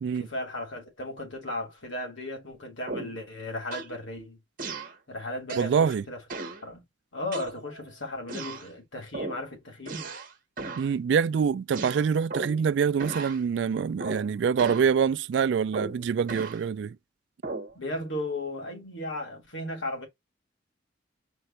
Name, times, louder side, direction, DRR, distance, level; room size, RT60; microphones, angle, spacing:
voice 1, 0.1-4.4 5.1-6.2 6.6-6.8 7.1-10.1 17.7-20.1, left 1 dB, 80° left, 2.7 m, -36 dB
sound 1, 2.9-3.2 3.7-4.0 4.6-5.0 5.5-5.8 6.3-6.6 7.3-7.9 8.3-8.7 9.1-9.4 9.9-10.3 10.6-10.9 11.7-12.7 13.0-13.4 14.0-14.3 14.6-14.9 15.7-16.6 17.4-17.7, right 3 dB, 45° right, 1.2 m, -36 dB
voice 2, 5.6-6.0 10.8-17.0, right 6 dB, 65° right, 0.3 m, -25 dB
4.5 x 2.5 x 4.3 m
head